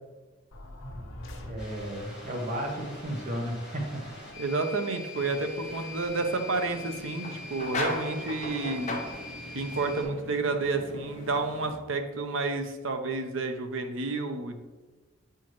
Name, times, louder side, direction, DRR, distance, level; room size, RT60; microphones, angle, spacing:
sound 1, 0.5-2.2, left 1 dB, 85° left, 1.1 m, -42 dB
voice 1, 1.4-4.0, equal, 40° right, 0 dB, 1.2 m, -34 dB
sound 2, 1.6-10.0, left 2 dB, 5° right, 1.7 m, -43 dB
voice 2, 4.4-9.0 9.5-14.6, right 3 dB, 70° right, 7 dB, 0.7 m, -30 dB
sound 3, 5.1-11.7, left 2 dB, 35° left, 0.9 m, -39 dB
8.3 x 4.5 x 3.1 m, 1.2 s
head